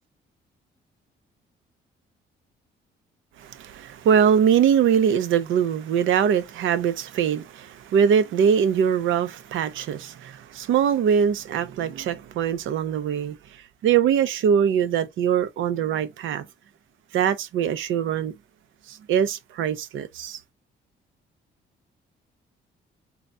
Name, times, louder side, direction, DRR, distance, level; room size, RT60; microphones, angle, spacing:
voice 1, 3.4-13.4 13.8-16.5 17.1-18.3 18.9-20.4, right 8 dB, 80° right, 0.8 m, -22 dB
3.9 x 2.8 x 3.3 m
cardioid pair, 90°, 20 cm